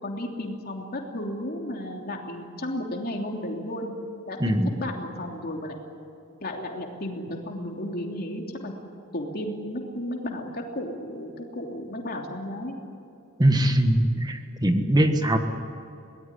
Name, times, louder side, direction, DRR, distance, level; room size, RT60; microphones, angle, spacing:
voice 1, 0.0-3.9 4.3-5.8 6.4-8.7 9.1-12.7, left 1 dB, 45° left, 2 dB, 3.1 m, -33 dB
voice 2, 4.4-4.7 13.4-15.4, right 1 dB, 20° right, 6 dB, 1.5 m, -21 dB
23.0 x 18.5 x 9.9 m, 2.7 s
head